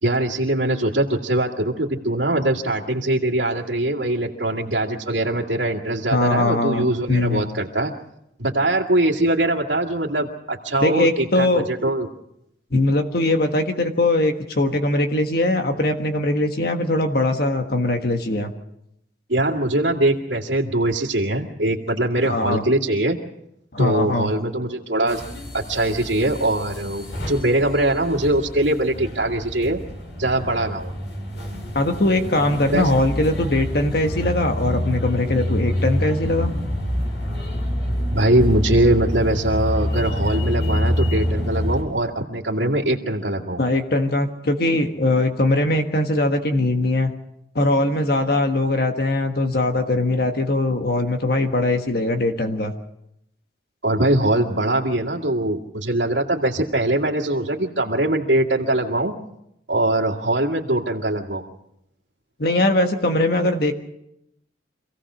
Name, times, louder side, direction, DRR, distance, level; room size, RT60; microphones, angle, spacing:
voice 1, 0.0-7.9 8.4-12.1 19.3-23.2 23.8-25.2 25.5-29.8 30.2-30.9 32.7-32.9 38.1-43.6 53.8-59.1 59.7-61.4, right 1 dB, 90° right, -5 dB, 2.1 m, -22 dB
voice 2, 6.1-7.5 10.8-11.6 12.7-18.5 22.2-22.6 23.7-24.3 31.7-36.5 43.6-47.1 47.5-52.7 62.4-63.7, left 2 dB, 55° left, 5 dB, 1.5 m, -21 dB
sound 1, 25.1-41.8, left 1 dB, 85° left, 6.5 m, -27 dB
26.5 x 16.5 x 6.3 m, 0.80 s
head